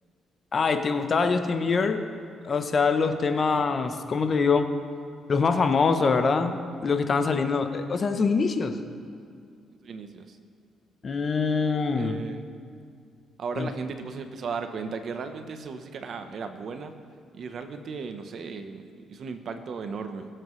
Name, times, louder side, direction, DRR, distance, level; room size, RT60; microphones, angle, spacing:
voice 1, 0.5-2.1 2.4-4.7 5.3-8.8 11.0-12.2 13.6-13.7, left 4 dB, 40° left, 8 dB, 0.8 m, -24 dB
voice 2, 9.8-10.4 11.9-12.4 13.4-16.9 17.3-18.8 19.1-20.3, right 5 dB, 60° right, 8 dB, 0.9 m, -36 dB
21.5 x 7.7 x 3.2 m, 2.2 s
cardioid pair, 90°, 0 cm